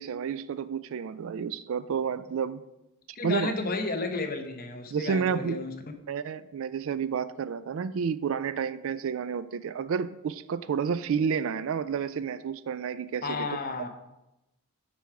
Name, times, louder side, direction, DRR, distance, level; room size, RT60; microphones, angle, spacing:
voice 1, 0.0-2.6 3.2-3.5 4.9-5.6 6.1-13.5, right 6 dB, 60° right, 15 dB, 0.3 m, -30 dB
voice 2, 3.1-5.8 13.2-13.9, left 3 dB, 40° left, 6 dB, 0.8 m, -32 dB
8.4 x 4.5 x 4.7 m, 0.93 s
head